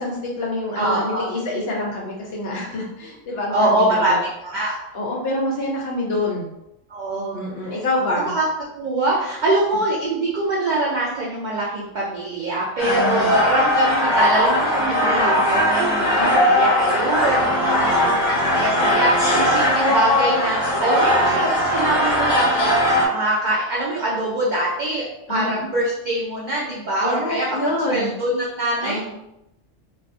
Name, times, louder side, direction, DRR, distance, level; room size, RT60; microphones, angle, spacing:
voice 1, 0.0-4.2 4.9-6.5 7.3-8.3 12.9-13.4 16.2-16.4 17.6-18.2 25.3-25.6 27.0-28.1 28.8-29.1, left 1 dB, 60° left, -2 dB, 0.7 m, -26 dB
voice 2, 0.7-1.3 3.5-4.9 6.9-7.4 8.3-8.5 8.8-27.5 27.9-29.1, right 1 dB, 75° right, -4 dB, 0.4 m, -23 dB
sound 1, 12.8-23.1, equal, 20° left, 1.0 m, -19 dB
2.3 x 2.3 x 2.5 m, 0.87 s
omnidirectional pair, 1.3 m